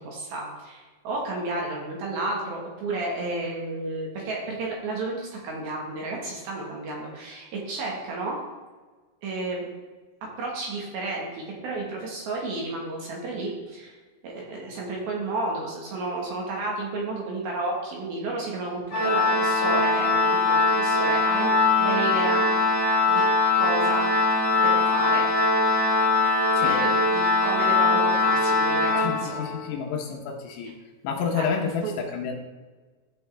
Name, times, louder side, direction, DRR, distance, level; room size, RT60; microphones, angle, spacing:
voice 1, 0.0-8.4 9.2-9.6 10.4-14.0 14.2-22.5 23.1-23.2 23.5-24.1 24.6-25.3 26.6-29.4 31.4-31.5 31.8-31.9, right 2 dB, 65° right, -2 dB, 2.8 m, -32 dB
Organ, 18.9-29.6, left 3 dB, 30° left, 1.8 m, -22 dB
voice 2, 29.0-30.7 31.0-32.3, left 6 dB, 75° left, 1 dB, 2.9 m, -29 dB
14.0 x 5.3 x 3.3 m, 1.3 s
omnidirectional pair, 5.3 m